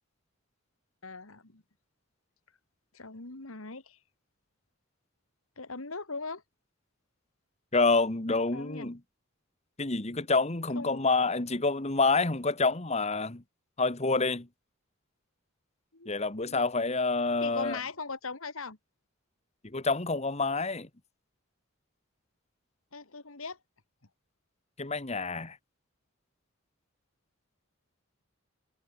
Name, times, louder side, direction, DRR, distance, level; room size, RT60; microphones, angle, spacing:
voice 1, 1.0-1.6 2.9-4.0 5.6-6.4 8.5-8.9 10.7-11.0 15.9-16.6 17.4-18.8 22.9-23.6, left 4 dB, 80° left, 2.6 m, -40 dB
voice 2, 7.7-9.0 9.8-13.4 13.8-14.5 16.0-17.8 19.6-20.9 24.8-25.6, left 3 dB, 30° left, 1.6 m, -28 dB
head